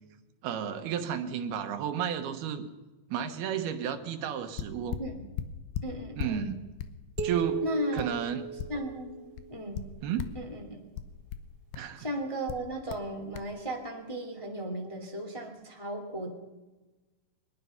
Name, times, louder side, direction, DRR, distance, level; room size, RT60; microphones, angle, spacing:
voice 1, 0.4-2.7 3.1-5.0 6.2-6.6 7.2-7.7 7.9-8.4 10.0-10.2 11.8-12.1, right 8 dB, 75° right, 7 dB, 3.0 m, -32 dB
sound 1, 4.3-4.4 4.6-6.4 6.8-9.0 9.4-10.5 11.0-11.9 12.5-13.1 13.3-13.5, left 9 dB, 85° left, 3.1 m, -38 dB
voice 2, 5.8-6.5 7.6-8.2 8.7-9.8 10.3-10.8 12.0-16.3, equal, 10° left, 1 dB, 2.0 m, -36 dB
sound 2, 7.2-9.6, right 8 dB, 50° right, 2.1 m, -37 dB
22.5 x 20.5 x 5.8 m, 1.2 s
omnidirectional pair, 4.6 m